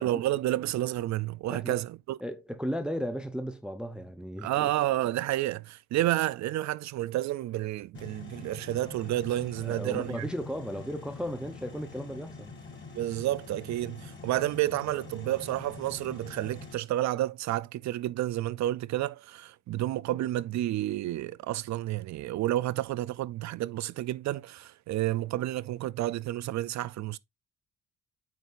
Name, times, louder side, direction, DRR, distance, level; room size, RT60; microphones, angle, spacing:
voice 1, 0.0-2.2 4.4-10.3 12.9-27.2, right 14 dB, 60° right, 0.5 m, -30 dB
voice 2, 2.2-4.7 9.6-12.5, equal, 5° right, 0.6 m, -35 dB
sound 1, 7.9-16.7, left 4 dB, 35° left, 3.0 m, -45 dB
9.3 x 4.0 x 2.5 m
cardioid pair, 85°, 31 cm